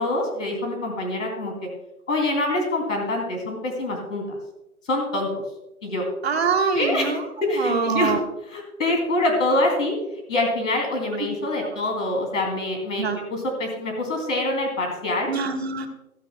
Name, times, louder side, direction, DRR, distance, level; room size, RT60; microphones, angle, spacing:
voice 1, 0.0-1.5 2.1-4.4 4.9-5.3 5.8-6.0 6.7-7.1 7.4-8.1 8.5-9.9 10.3-15.3, left 1 dB, 60° left, 2 dB, 2.8 m, -25 dB
voice 2, 6.2-7.2 7.6-8.2 11.2-11.3 11.6-11.7 13.0-13.2 15.3-15.9, right 5 dB, 45° right, 4 dB, 1.4 m, -24 dB
14.5 x 14.0 x 2.2 m, 0.87 s
hypercardioid pair, 175°, 44 cm